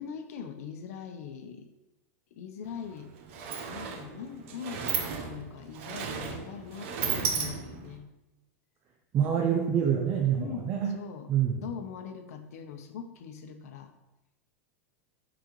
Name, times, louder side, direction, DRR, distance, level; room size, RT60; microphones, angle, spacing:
voice 1, 0.0-1.7 2.3-3.1 3.6-8.1 9.2-9.3 10.4-11.3 11.6-13.9, left 7 dB, 75° left, 7 dB, 0.8 m, -41 dB
Sliding door, 2.6-2.8 3.0-8.0, right 6 dB, 55° right, 0.8 m, -34 dB
voice 2, 9.1-10.9 11.3-11.6, right 8 dB, 25° right, 1 dB, 0.5 m, -26 dB
8.6 x 4.0 x 3.1 m, 0.97 s
supercardioid pair, 160°, 8 cm